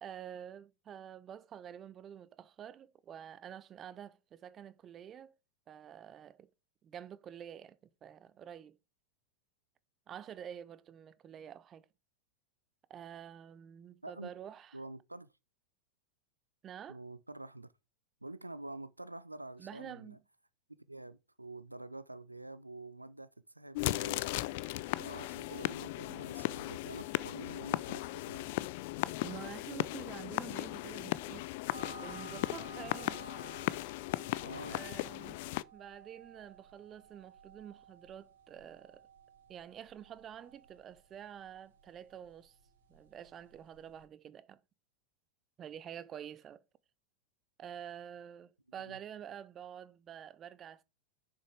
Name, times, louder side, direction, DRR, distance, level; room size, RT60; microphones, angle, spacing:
voice 1, 0.0-5.3 5.7-6.5 6.8-8.8 10.1-11.9 12.9-14.8 16.6-17.0 19.6-20.2 29.2-31.4 31.9-33.2 34.7-35.4 35.7-39.0 39.5-42.5 42.9-44.6 45.6-46.6 47.6-50.8, right 9 dB, 25° right, 0.6 m, -48 dB
voice 2, 14.7-15.3 16.9-17.7 18.2-20.2 20.9-23.3 23.5-24.2 25.0-28.5 34.4-34.8 48.9-49.0, right 2 dB, 85° right, 0.4 m, -47 dB
sound 1, 23.7-35.6, left 18 dB, 50° left, 0.3 m, -37 dB
sound 2, 31.7-44.0, right 4 dB, 60° right, 2.1 m, -55 dB
6.9 x 6.0 x 4.7 m
figure-of-eight pair, 90°, 0 cm